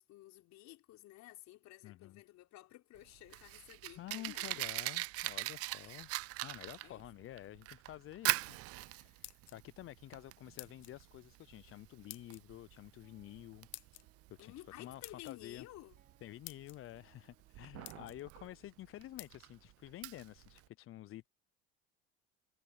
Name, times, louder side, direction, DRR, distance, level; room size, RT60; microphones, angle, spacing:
voice 1, 0.0-4.7 5.8-6.0 6.8-7.1 14.4-16.0, left 16 dB, 60° left, 4.1 m, -54 dB
voice 2, 1.8-2.2 4.0-6.1 6.4-13.7 14.4-15.7 16.2-21.3, left 14 dB, 45° left, 0.6 m, -50 dB
Fire, 3.0-20.7, right 19 dB, 50° right, 0.5 m, -42 dB
sound 1, 9.0-9.9 10.6-11.0 12.1-12.4 13.7-14.0 15.0-15.4 16.1-16.2 16.4-16.8 17.4-17.5 17.8-18.2 19.2-19.3, left 15 dB, 90° left, 1.2 m, -50 dB
sound 2, 13.0-18.6, right 5 dB, 25° right, 4.9 m, -77 dB
hypercardioid pair, 80°, 32 cm